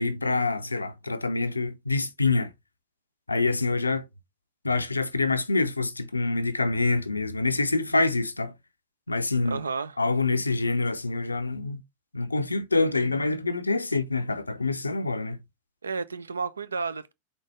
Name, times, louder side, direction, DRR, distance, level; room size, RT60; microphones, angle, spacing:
voice 1, 0.0-2.5 3.3-4.0 4.6-8.5 9.1-9.6 10.0-11.8 12.1-15.4, left 3 dB, 80° left, 0.5 m, -26 dB
voice 2, 9.4-10.0 15.8-17.1, right 4 dB, 75° right, 0.5 m, -32 dB
4.1 x 4.0 x 3.0 m
figure-of-eight pair, 90°, 0 cm